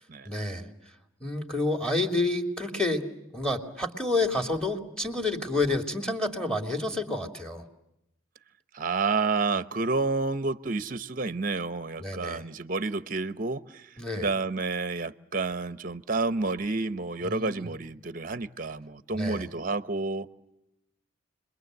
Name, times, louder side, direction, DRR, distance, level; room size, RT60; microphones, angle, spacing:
voice 1, 0.2-0.7 1.2-7.6 12.0-12.5 14.0-14.3 17.2-17.7 19.1-19.5, left 2 dB, 5° left, 2.6 m, -29 dB
voice 2, 8.7-13.9 14.2-20.3, right 3 dB, 40° right, 0.9 m, -30 dB
30.0 x 22.5 x 8.0 m
head